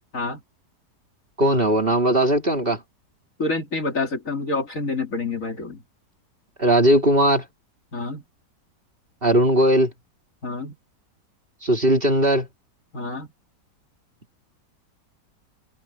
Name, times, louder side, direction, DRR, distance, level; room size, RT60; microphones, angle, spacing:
voice 1, 1.4-2.8 6.6-7.4 9.2-9.9 11.6-12.5, right 1 dB, 30° right, 2.9 m, -18 dB
voice 2, 3.4-5.8 7.9-8.2 10.4-10.8 12.9-13.3, left 3 dB, 50° left, 2.9 m, -27 dB
open air
omnidirectional pair, 1.9 m